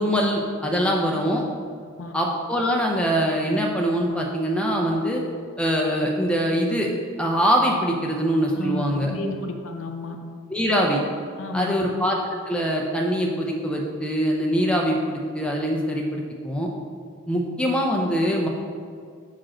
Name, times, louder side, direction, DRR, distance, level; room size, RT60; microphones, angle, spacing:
voice 1, 0.0-1.4 2.1-5.2 5.6-6.9 7.2-9.1 10.5-11.0 11.5-12.2 12.5-16.7 17.3-18.5, equal, 5° left, -1 dB, 0.5 m, -23 dB
voice 2, 8.5-10.2 11.4-11.9, left 2 dB, 70° left, 4 dB, 0.6 m, -31 dB
6.2 x 5.0 x 4.3 m, 2.1 s
head